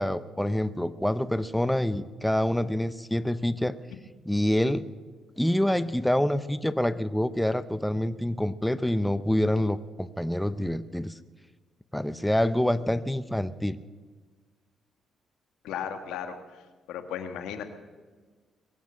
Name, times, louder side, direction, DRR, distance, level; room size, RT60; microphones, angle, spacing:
voice 1, 0.0-3.7 4.2-4.8 5.4-11.1 11.9-13.8, left 1 dB, 5° left, 13 dB, 0.6 m, -26 dB
voice 2, 15.6-16.4 16.9-17.6, left 8 dB, 90° left, 7 dB, 1.6 m, -35 dB
22.0 x 8.6 x 7.4 m, 1.4 s
cardioid pair, 90°, 0 cm